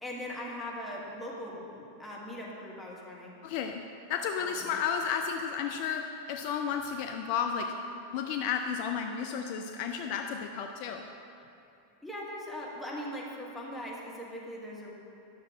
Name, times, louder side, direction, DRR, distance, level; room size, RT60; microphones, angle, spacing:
voice 1, 0.0-3.4 4.4-4.7 12.0-14.9, left 1 dB, 5° left, -5 dB, 1.4 m, -40 dB
voice 2, 3.4-3.8 4.1-7.7 7.9-11.0, left 7 dB, 45° left, 4 dB, 0.4 m, -32 dB
9.8 x 6.5 x 3.6 m, 2.8 s
figure-of-eight pair, 90°, 0 cm